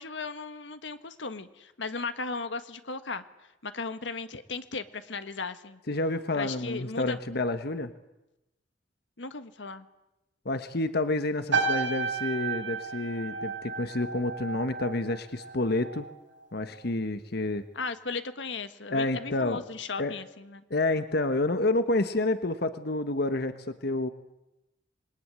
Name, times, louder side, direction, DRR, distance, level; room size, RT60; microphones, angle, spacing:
voice 1, 0.0-3.3 3.6-5.8 6.3-7.2 9.2-9.9 17.7-20.6, left 4 dB, 75° left, 11 dB, 1.5 m, -36 dB
voice 2, 5.9-7.9 10.4-16.1 16.5-17.7 18.9-19.6 20.0-20.2 20.7-24.1, left 2 dB, 60° left, 10 dB, 1.3 m, -29 dB
sound 1, 11.5-16.1 16.4-16.8, right 4 dB, 80° right, 4.8 m, -32 dB
27.0 x 21.5 x 9.8 m, 0.95 s
head